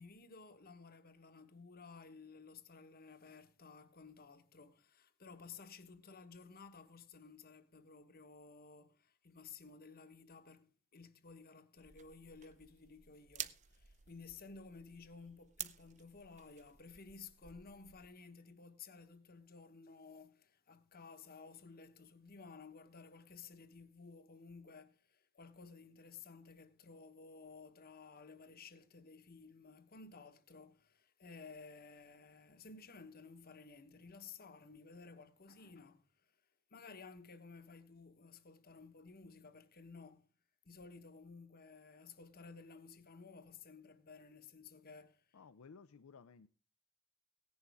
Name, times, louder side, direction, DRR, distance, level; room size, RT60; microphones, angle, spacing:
voice 1, 0.0-36.3 36.7-40.3 40.6-45.4, left 4 dB, 45° left, 1.2 m, -55 dB
sound 1, 11.8-18.1, right 10 dB, 35° right, 0.6 m, -51 dB
voice 2, 45.3-46.5, left 5 dB, 70° left, 0.5 m, -57 dB
17.0 x 10.5 x 3.5 m
head